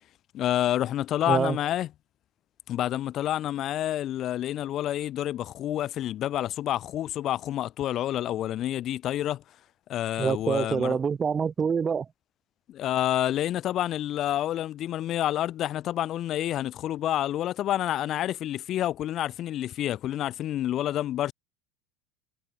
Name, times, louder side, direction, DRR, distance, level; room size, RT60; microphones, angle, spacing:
voice 1, 0.3-1.9 2.7-9.4 9.9-11.0 12.7-21.3, left 12 dB, 35° left, 6.7 m, -28 dB
voice 2, 10.2-12.1, right 6 dB, 20° right, 1.6 m, -26 dB
cardioid pair, 165°, 0 cm